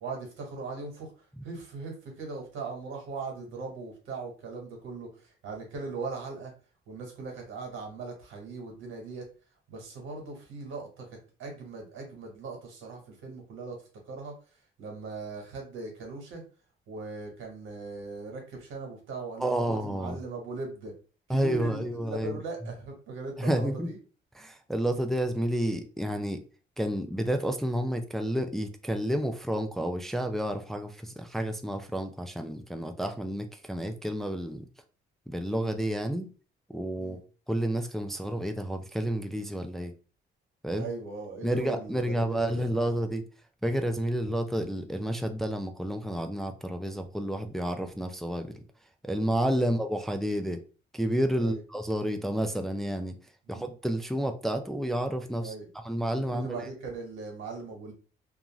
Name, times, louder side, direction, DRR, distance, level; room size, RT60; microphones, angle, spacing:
voice 1, 0.0-1.1 1.4-6.5 6.9-9.3 9.7-11.1 11.4-13.8 14.1-14.3 14.8-16.4 16.9-20.9 21.3-24.0 37.0-37.2 40.7-43.1 51.4-51.6 53.5-53.7 55.4-55.7 56.2-57.9, right 4 dB, 90° right, 1.2 m, -39 dB
voice 2, 19.4-20.2 21.3-22.4 23.4-23.9 24.4-26.4 26.8-34.6 35.3-36.3 36.7-37.2 37.5-39.9 40.6-40.9 41.4-43.2 43.6-48.5 49.0-50.6 50.9-53.2 53.5-55.5 55.8-56.6, right 1 dB, ahead, 0.3 m, -30 dB
2.5 x 2.3 x 3.0 m
cardioid pair, 90°, 20 cm